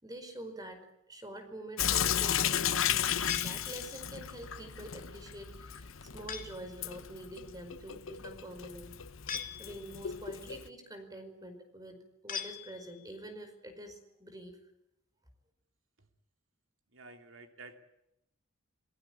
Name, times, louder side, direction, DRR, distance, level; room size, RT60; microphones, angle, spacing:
voice 1, 0.0-0.8 1.1-9.0 9.6-14.6, right 1 dB, 20° right, 7 dB, 4.9 m, -46 dB
Sink (filling or washing) / Drip, 1.8-10.7, left 9 dB, 70° left, 1.1 m, -34 dB
sound 1, 3.3-4.2 6.3-6.8 9.3-10.1 12.3-13.2, left 7 dB, 40° left, 2.5 m, -41 dB
voice 2, 16.9-17.8, right 3 dB, 65° right, 5 dB, 2.9 m, -51 dB
28.5 x 18.5 x 8.7 m, 0.83 s
head